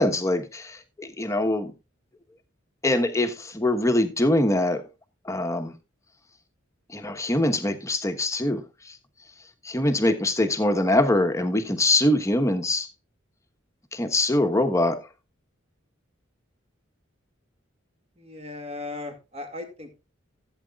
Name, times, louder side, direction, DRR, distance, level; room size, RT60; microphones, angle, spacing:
voice 1, 0.0-1.7 2.8-4.8 5.2-5.7 6.9-9.0 9.6-12.9 13.9-15.0, left 1 dB, 15° left, 1.2 m, -23 dB
voice 2, 18.2-19.9, left 2 dB, 35° right, 2.3 m, -37 dB
15.5 x 8.4 x 2.4 m
head